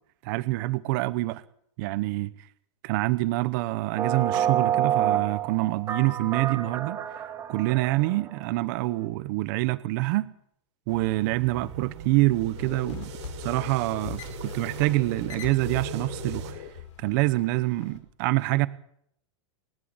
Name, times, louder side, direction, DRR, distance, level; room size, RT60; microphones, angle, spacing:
voice 1, 0.2-1.4 1.8-2.3 2.8-7.0 7.5-10.3 10.9-13.1 13.4-16.7 17.0-18.7, right 19 dB, 40° right, 16 dB, 0.9 m, -26 dB
sound 1, 4.0-8.5, right 10 dB, 20° right, 2.0 m, -28 dB
sound 2, 10.9-16.5, right 5 dB, 65° right, 6.7 m, -40 dB
sound 3, 12.5-18.0, left 9 dB, 80° left, 5.2 m, -41 dB
27.5 x 12.5 x 7.9 m, 0.69 s
supercardioid pair, 170°, 16 cm